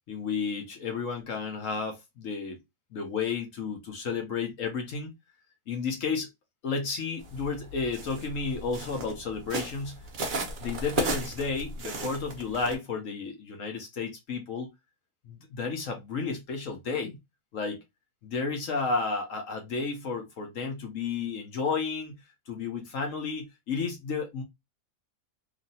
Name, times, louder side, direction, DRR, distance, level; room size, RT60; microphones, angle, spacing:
voice 1, 0.1-2.6 2.9-5.1 5.7-6.3 6.6-10.0 10.6-14.7 15.2-17.2 17.5-17.8 18.2-22.1 22.5-24.4, left 4 dB, 60° left, 1.0 m, -32 dB
sound 1, 7.2-12.7, right 2 dB, 80° right, 0.4 m, -35 dB
3.0 x 2.5 x 2.7 m
omnidirectional pair, 1.8 m